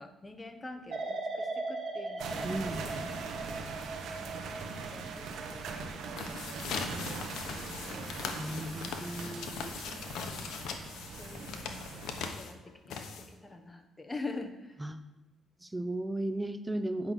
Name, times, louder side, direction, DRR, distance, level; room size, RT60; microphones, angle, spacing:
voice 1, 0.0-3.7 4.2-6.4 6.8-8.6 8.9-9.5 10.2-14.8, left 3 dB, 20° left, 6 dB, 1.2 m, -47 dB
sound 1, 0.9-7.8 8.3-8.7, right 2 dB, 55° right, 1.9 m, -40 dB
sound 2, 2.2-12.3, right 4 dB, 80° right, 1.2 m, -41 dB
voice 2, 2.4-2.9 8.4-9.7 14.8-15.0 15.6-17.1, right 1 dB, 10° right, 10 dB, 0.6 m, -35 dB
sound 3, 6.1-13.5, left 6 dB, 80° left, 1.0 m, -40 dB
8.9 x 5.7 x 6.2 m, 1.0 s
cardioid pair, 90°, 0 cm